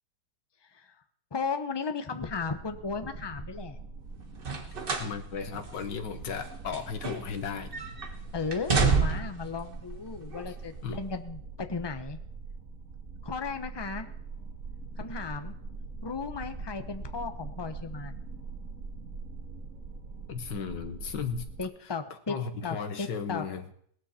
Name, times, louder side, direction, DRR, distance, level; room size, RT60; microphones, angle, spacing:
voice 1, 1.3-3.8 8.3-12.2 13.2-14.1 15.0-15.6 16.0-18.2 21.6-22.4 22.6-23.5, left 4 dB, 20° left, 8 dB, 0.7 m, -35 dB
sound 1, 2.2-21.6, right 4 dB, 50° right, 1.7 m, -43 dB
sound 2, 4.4-5.2 5.5-5.7 6.4-7.5 7.7-8.1 8.5-9.4 10.3-10.4, right 5 dB, 35° right, 1.4 m, -28 dB
voice 2, 5.0-7.7 10.8-11.0 20.3-21.5 22.3-23.6, left 6 dB, 80° left, 9 dB, 1.9 m, -35 dB
18.5 x 13.0 x 4.3 m, 0.66 s
omnidirectional pair, 1.9 m